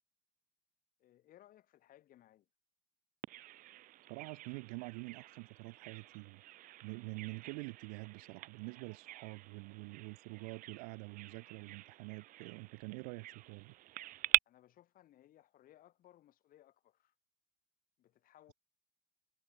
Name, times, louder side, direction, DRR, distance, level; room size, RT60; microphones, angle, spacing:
voice 1, 1.0-2.5 14.4-17.1 18.0-18.5, left 13 dB, 50° left, 1.4 m, -63 dB
Bird vocalization bird call bird song, 3.2-14.4, right 15 dB, 50° right, 0.5 m, -42 dB
voice 2, 4.1-6.4 6.8-13.7, right 36 dB, 80° right, 0.8 m, -46 dB
supercardioid pair, 95°, 18 cm